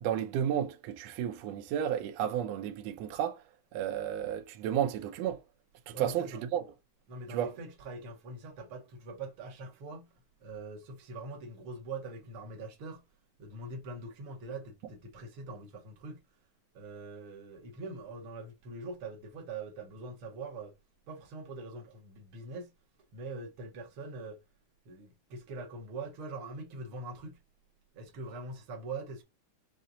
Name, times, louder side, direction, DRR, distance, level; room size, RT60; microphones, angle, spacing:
voice 1, 0.0-3.4 3.7-5.4 5.9-6.6 7.3-7.5, right 10 dB, 75° right, 1.6 m, -32 dB
voice 2, 5.9-6.5 7.1-10.1 10.4-13.0 13.4-16.2 16.7-20.7 21.1-22.7 23.1-24.4 24.8-27.4 27.9-29.2, right 3 dB, 60° right, 1.5 m, -43 dB
5.7 x 2.1 x 3.8 m
omnidirectional pair, 3.5 m